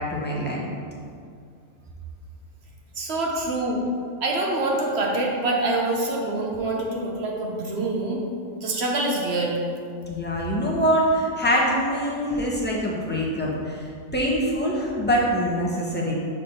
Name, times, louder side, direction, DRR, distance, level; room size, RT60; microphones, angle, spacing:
voice 1, 0.1-0.7 10.1-13.9 14.1-16.1, equal, 10° left, -5 dB, 0.9 m, -24 dB
voice 2, 3.0-3.8 4.2-8.2 8.6-9.6, right 2 dB, 55° right, -1 dB, 1.0 m, -25 dB
5.2 x 4.3 x 5.3 m, 2.3 s
omnidirectional pair, 1.4 m